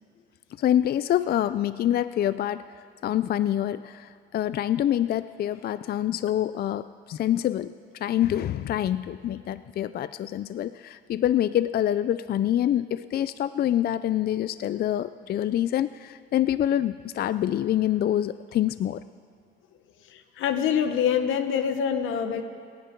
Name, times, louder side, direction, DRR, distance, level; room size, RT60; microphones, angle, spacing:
voice 1, 0.6-2.6 3.0-19.0, left 11 dB, 50° left, 14 dB, 0.4 m, -26 dB
voice 2, 20.0-22.4, left 8 dB, 90° left, 9 dB, 1.1 m, -25 dB
29.0 x 10.5 x 4.5 m, 2.2 s
cardioid pair, 90°, 20 cm